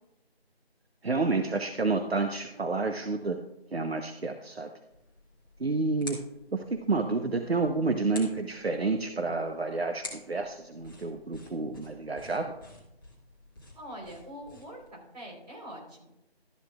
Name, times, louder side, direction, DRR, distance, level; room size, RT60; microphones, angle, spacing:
voice 1, 1.0-3.4 3.7-4.7 5.6-6.2 6.5-12.5, right 3 dB, 75° right, 6 dB, 0.9 m, -29 dB
sound 1, 4.9-14.9, left 2 dB, 20° left, 1.6 m, -49 dB
voice 2, 13.7-16.1, equal, 40° right, -2 dB, 4.0 m, -44 dB
12.5 x 10.5 x 2.4 m, 0.85 s
figure-of-eight pair, 170°, 32 cm